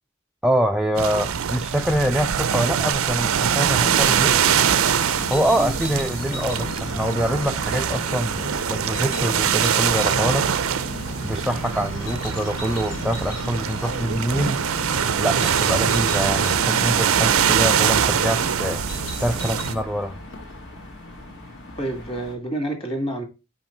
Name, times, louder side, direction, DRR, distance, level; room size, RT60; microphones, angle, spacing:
voice 1, 0.4-4.4 5.3-10.5 11.2-14.7 15.2-20.2, equal, ahead, 0.3 m, -25 dB
sound 1, 1.0-19.8, right 8 dB, 90° right, 0.5 m, -23 dB
sound 2, 3.4-19.8, left 2 dB, 85° left, 1.4 m, -35 dB
sound 3, 12.7-22.4, left 1 dB, 65° left, 2.0 m, -40 dB
voice 2, 21.8-23.2, right 1 dB, 25° left, 2.0 m, -28 dB
6.0 x 5.6 x 4.4 m
head